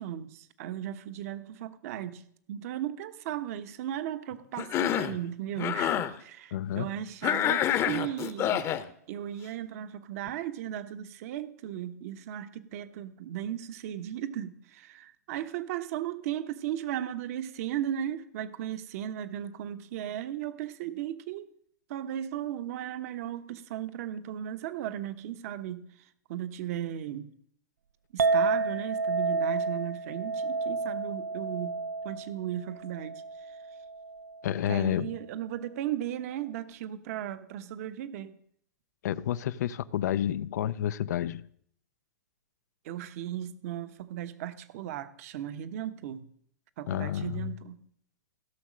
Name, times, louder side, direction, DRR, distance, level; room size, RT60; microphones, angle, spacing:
voice 1, 0.0-2.2 2.5-8.7 9.1-21.4 21.9-25.8 26.3-27.3 28.1-31.8 32.0-33.6 34.7-38.4 42.8-46.2 46.8-47.8, right 11 dB, 55° right, 1.1 m, -36 dB
Cough, 4.6-5.2 5.6-6.1 7.2-8.8, left 11 dB, 30° left, 0.9 m, -27 dB
voice 2, 6.5-6.9 34.4-35.1 39.0-41.4 46.9-47.5, left 11 dB, 65° left, 0.5 m, -30 dB
Chink clink, 28.2-34.5, right 3 dB, 85° right, 0.5 m, -31 dB
16.0 x 6.4 x 6.3 m
hypercardioid pair, 125°, 10 cm